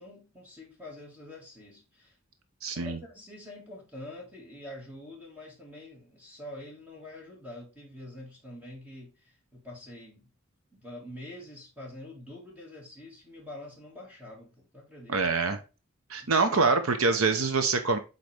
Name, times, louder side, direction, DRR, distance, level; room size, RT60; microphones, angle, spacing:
voice 1, 0.0-2.2 2.7-10.3 10.7-15.2 16.2-16.5, left 1 dB, 5° right, 1.7 m, -46 dB
voice 2, 2.6-3.0 15.1-15.6 16.1-18.0, right 4 dB, 90° right, 0.8 m, -25 dB
8.0 x 4.1 x 3.3 m
head